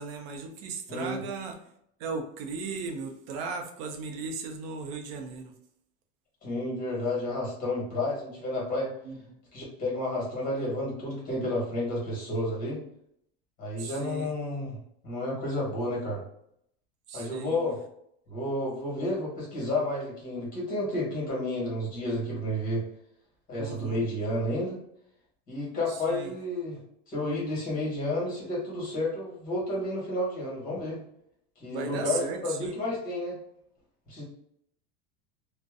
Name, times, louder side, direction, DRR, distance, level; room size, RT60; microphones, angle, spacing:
voice 1, 0.0-1.6 2.0-5.5 9.1-9.2 13.8-14.3 17.1-17.6 23.6-24.0 25.9-26.3 31.7-32.7, right 4 dB, 60° right, 4 dB, 0.6 m, -36 dB
voice 2, 0.9-1.2 6.4-8.9 9.5-12.8 13.6-14.8 15.0-16.2 17.1-17.8 18.3-22.8 23.5-24.8 25.5-26.8 27.1-31.0 31.6-33.4 34.1-34.2, left 1 dB, 25° left, -4 dB, 1.3 m, -31 dB
2.5 x 2.1 x 2.4 m, 0.73 s
supercardioid pair, 150°, 33 cm